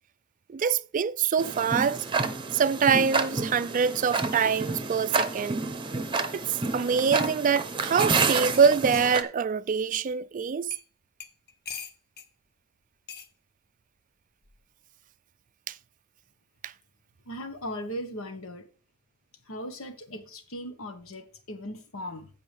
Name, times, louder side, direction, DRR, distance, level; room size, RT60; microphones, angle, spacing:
voice 1, 0.5-2.0 2.5-5.6 6.3-6.4 6.7-10.7 15.7-15.8 16.6-16.7, right 6 dB, 40° right, 0.4 m, -25 dB
Tick-tock, 1.4-9.2, right 4 dB, 25° right, 0.8 m, -29 dB
sound 1, 8.0-9.2 9.9-10.0 10.7-10.9 11.2-12.3 13.1-13.3 14.4-14.7, left 6 dB, 50° left, 0.9 m, -42 dB
voice 2, 17.3-18.7 19.5-22.3, equal, 75° left, 1.5 m, -38 dB
15.0 x 5.2 x 3.5 m
head